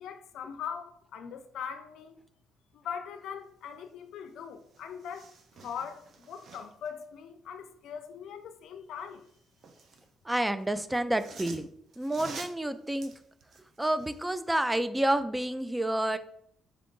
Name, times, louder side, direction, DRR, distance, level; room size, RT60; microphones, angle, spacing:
voice 1, 0.0-2.1 2.8-5.2 5.6-9.2, left 7 dB, 80° left, 0.4 m, -41 dB
sound 1, 4.3-4.4 4.6-6.9 9.0-10.1 10.9-14.3 14.7-14.8, right 4 dB, 60° right, 0.6 m, -49 dB
voice 2, 10.3-11.7 12.0-13.1 13.8-16.2, right 1 dB, 10° right, 0.3 m, -29 dB
4.6 x 2.5 x 3.7 m
cardioid pair, 90°, 0 cm